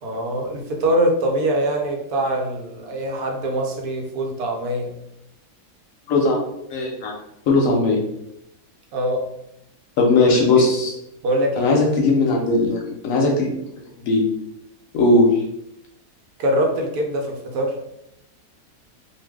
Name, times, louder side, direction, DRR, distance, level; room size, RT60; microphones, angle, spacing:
voice 1, 0.0-5.0 8.9-9.3 10.2-10.7 11.2-11.7 16.4-17.8, right 1 dB, 75° right, 1 dB, 1.1 m, -23 dB
voice 2, 6.1-6.4 6.7-7.1 7.5-8.0 10.0-10.9 11.6-13.5 14.0-14.3 14.9-15.4, left 2 dB, 70° left, 0 dB, 0.9 m, -18 dB
2.6 x 2.2 x 3.3 m, 0.80 s
omnidirectional pair, 1.7 m